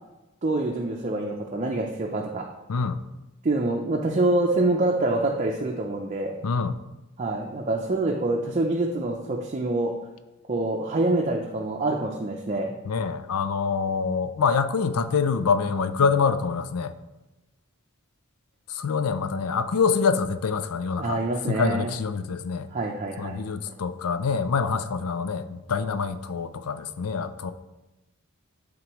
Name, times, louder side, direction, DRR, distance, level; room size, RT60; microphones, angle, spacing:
voice 1, 0.4-2.5 3.4-6.3 7.2-9.9 10.5-12.7 21.0-21.9 22.7-23.4, right 2 dB, 35° right, 0 dB, 0.5 m, -26 dB
voice 2, 6.4-6.8 12.9-16.9 18.7-21.2 21.5-22.7 23.2-27.5, left 5 dB, 90° left, 11 dB, 0.5 m, -25 dB
11.0 x 3.7 x 3.0 m, 1.0 s
head